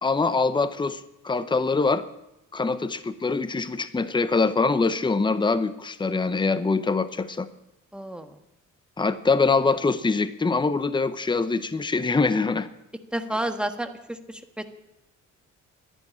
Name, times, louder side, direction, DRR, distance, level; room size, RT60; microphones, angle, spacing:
voice 1, 0.0-2.0 2.5-7.5 9.0-12.7, left 4 dB, 15° left, 12 dB, 0.8 m, -24 dB
voice 2, 7.9-8.3 13.1-14.6, right 1 dB, 5° right, 6 dB, 1.4 m, -31 dB
12.0 x 10.5 x 8.7 m, 0.88 s
cardioid pair, 90°, 30 cm